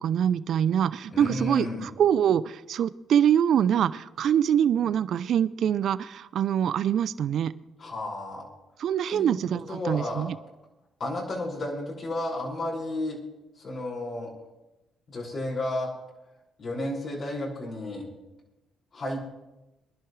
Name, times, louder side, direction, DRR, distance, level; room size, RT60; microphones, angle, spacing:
voice 1, 0.0-7.5 8.8-10.3, right 9 dB, 65° right, 17 dB, 0.5 m, -24 dB
voice 2, 1.1-1.9 7.8-8.5 9.1-9.4 9.7-10.3 11.0-13.2 13.6-14.3 15.1-15.9 16.6-18.1 18.9-19.2, left 1 dB, 50° left, -4 dB, 5.8 m, -32 dB
24.0 x 11.0 x 3.3 m, 0.99 s
supercardioid pair, 60°, 0 cm